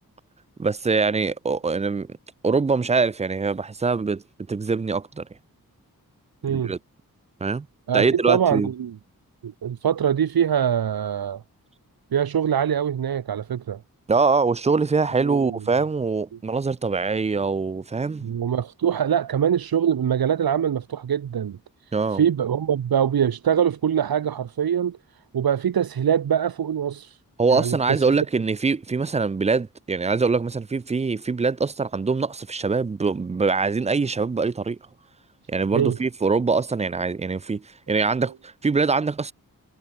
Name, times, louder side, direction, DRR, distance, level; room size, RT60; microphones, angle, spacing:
voice 1, 0.6-2.1 2.4-4.2 4.5-5.3 6.5-6.8 7.4-7.7 7.9-8.7 14.1-18.3 21.9-22.2 27.4-34.8 35.5-39.3, right 4 dB, 20° right, 0.4 m, -23 dB
voice 2, 7.9-8.9 9.4-11.4 12.1-13.8 15.2-15.6 18.2-21.6 22.1-25.0 25.3-27.2 27.5-28.2 35.7-36.0, right 8 dB, 90° right, 1.4 m, -23 dB
wide cardioid pair, 100°, 35 cm